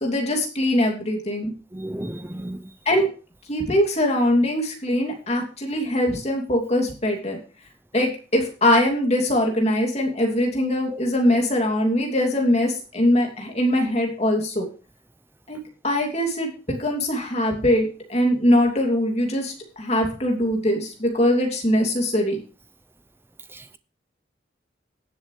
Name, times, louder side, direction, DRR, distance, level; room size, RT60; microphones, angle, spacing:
voice 1, 0.0-1.5 2.9-3.1 3.5-7.4 7.9-14.7 15.5-15.6 15.8-22.4, left 1 dB, 35° left, 2.9 m, -22 dB
voice 2, 1.7-2.6 10.9-11.0, right 1 dB, 10° right, 0.6 m, -32 dB
17.5 x 7.8 x 3.3 m
head